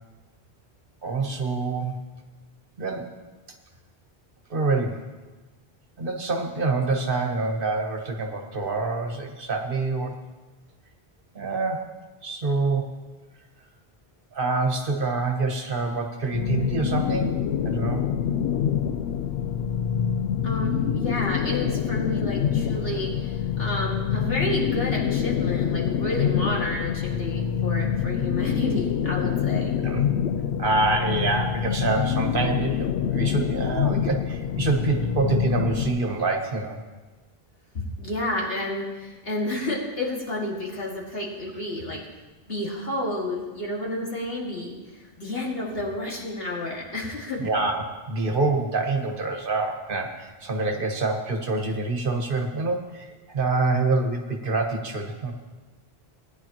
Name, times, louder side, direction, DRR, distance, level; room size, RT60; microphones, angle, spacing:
voice 1, 1.0-2.0 2.8-3.1 4.5-5.0 6.0-10.1 11.3-11.8 12.2-12.8 14.3-17.4 17.6-18.0 29.8-30.0 30.6-36.8 47.4-55.3, right 3 dB, 60° right, 3 dB, 1.3 m, -26 dB
sound 1, 16.3-35.9, left 8 dB, 85° left, 0.8 m, -26 dB
voice 2, 20.4-23.3 23.6-29.7 37.7-42.0 42.5-44.8 45.2-47.4, left 1 dB, 70° left, -4 dB, 2.4 m, -30 dB
18.0 x 10.0 x 3.0 m, 1.2 s
omnidirectional pair, 1.0 m